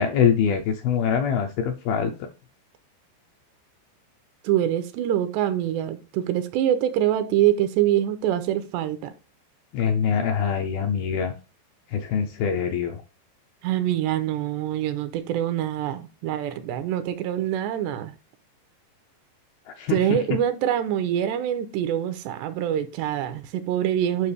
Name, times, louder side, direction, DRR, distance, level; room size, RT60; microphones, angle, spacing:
voice 1, 0.0-2.1 9.7-11.3 11.9-13.0 19.8-20.0, left 7 dB, 80° left, 2.2 m, -23 dB
voice 2, 4.4-9.1 13.6-18.1 19.9-24.3, right 11 dB, 85° right, 2.8 m, -25 dB
9.6 x 5.7 x 3.3 m
omnidirectional pair, 5.1 m